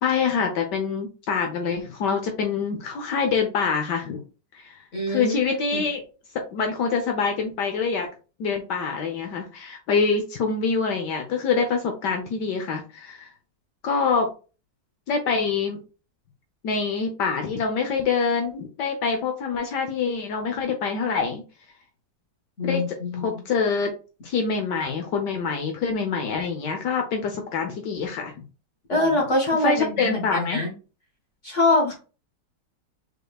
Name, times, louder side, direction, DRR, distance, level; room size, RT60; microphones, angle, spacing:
voice 1, 0.0-4.2 4.5-4.8 5.1-6.0 6.3-8.1 8.4-13.3 13.8-14.3 15.1-15.8 16.6-21.4 22.6-22.8 23.2-23.9 24.2-28.3 29.6-30.6, left 5 dB, 70° left, 4 dB, 1.4 m, -25 dB
voice 2, 4.9-5.8 22.6-23.4 28.9-30.7 31.4-31.9, left 2 dB, 45° left, -2 dB, 1.6 m, -24 dB
5.3 x 4.2 x 2.3 m, 0.34 s
omnidirectional pair, 1.9 m